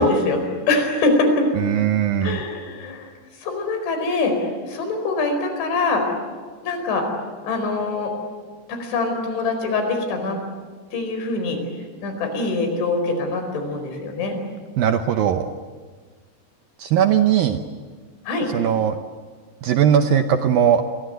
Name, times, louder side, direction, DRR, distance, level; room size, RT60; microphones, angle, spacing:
voice 1, 0.0-1.5 2.2-3.1 3.4-6.0 6.6-7.1 7.4-8.1 8.7-10.4 10.9-11.6 12.0-14.4 18.3-18.5, left 3 dB, 90° left, 5 dB, 7.1 m, -23 dB
voice 2, 1.6-2.4 14.8-15.5 16.8-17.6 18.5-19.0 19.6-20.8, right 9 dB, 75° right, 7 dB, 2.2 m, -19 dB
28.5 x 23.0 x 8.1 m, 1.5 s
omnidirectional pair, 5.2 m